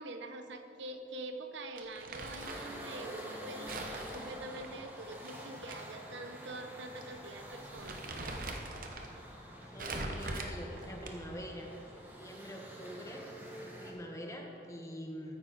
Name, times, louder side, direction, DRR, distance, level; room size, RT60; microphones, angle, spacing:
voice 1, 0.0-8.0 9.6-9.7, right 2 dB, 80° right, 7 dB, 0.8 m, -45 dB
Crumpling crinkling, 1.8-2.8 3.7-5.8 6.1-6.2 7.0-7.2 7.5-9.1 9.8-11.4, right 2 dB, 50° right, 0.9 m, -42 dB
sound 1, 2.4-13.9, equal, 10° right, 1.2 m, -48 dB
voice 2, 9.5-13.3 13.6-15.4, equal, 15° left, 1 dB, 1.0 m, -45 dB
13.5 x 9.4 x 3.9 m, 2.9 s
head